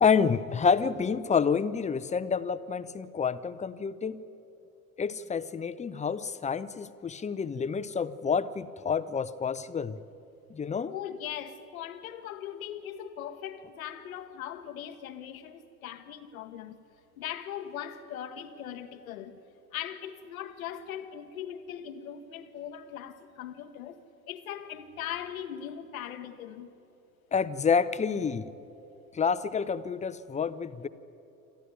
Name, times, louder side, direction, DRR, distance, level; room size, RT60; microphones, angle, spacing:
voice 1, 0.0-4.2 5.0-10.0 10.5-10.9 27.3-28.5 29.1-30.9, left 6 dB, 15° left, 0.8 m, -28 dB
voice 2, 10.9-16.8 17.2-19.4 19.7-24.0 24.3-26.7, left 10 dB, 70° left, 1.2 m, -40 dB
26.5 x 14.0 x 9.3 m
figure-of-eight pair, 60°, 43 cm